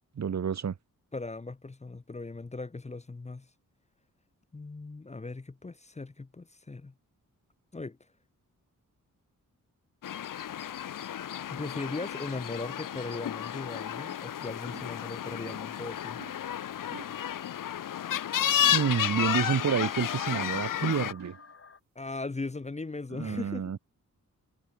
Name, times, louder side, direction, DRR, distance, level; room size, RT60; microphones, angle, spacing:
voice 1, 0.2-0.7 18.7-21.4 23.1-23.8, right 7 dB, 55° right, 1.2 m, -29 dB
voice 2, 1.1-3.5 4.5-6.9 7.7-8.0 11.5-16.2 21.9-23.7, left 3 dB, 20° left, 0.9 m, -38 dB
sound 1, 10.0-21.1, left 10 dB, 70° left, 0.8 m, -32 dB
sound 2, 14.7-15.0 15.4-15.8 16.2-16.4 16.9-17.2 18.6-19.0 19.5-19.9 20.3-20.7 21.2-21.5, right 8 dB, 80° right, 3.0 m, -48 dB
sound 3, 15.9-21.8, left 5 dB, 40° left, 2.8 m, -53 dB
wide cardioid pair, 120°, 33 cm